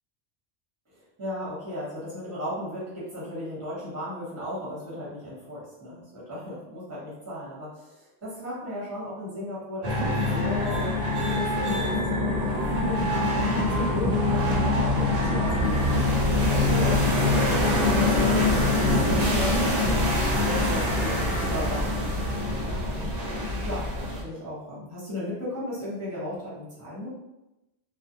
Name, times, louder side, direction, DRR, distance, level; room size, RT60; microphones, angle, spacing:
voice 1, 0.9-15.8 16.2-18.4 18.8-23.1 23.6-27.1, left 1 dB, 15° right, -8 dB, 0.8 m, -35 dB
sound 1, 9.8-24.2, left 2 dB, 60° right, 0.8 m, -24 dB
2.4 x 2.0 x 2.7 m, 0.94 s
omnidirectional pair, 1.1 m